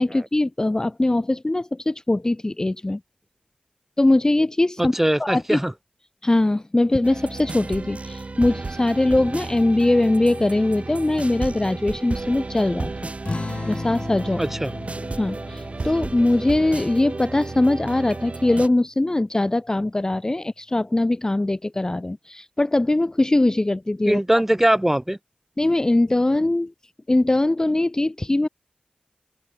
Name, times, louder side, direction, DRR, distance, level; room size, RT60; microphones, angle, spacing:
voice 1, 0.0-3.0 4.0-4.9 5.2-5.6 6.2-13.1 13.7-14.4 15.1-24.2 25.6-26.7 27.1-28.5, left 2 dB, 25° left, 0.5 m, -21 dB
voice 2, 4.8-5.7 14.4-14.7 24.1-25.2, right 1 dB, 10° right, 1.4 m, -21 dB
sound 1, 7.0-18.7, right 3 dB, 50° right, 2.7 m, -33 dB
sound 2, 13.2-18.3, left 3 dB, 45° left, 4.8 m, -35 dB
open air
wide cardioid pair, 70°, 3 cm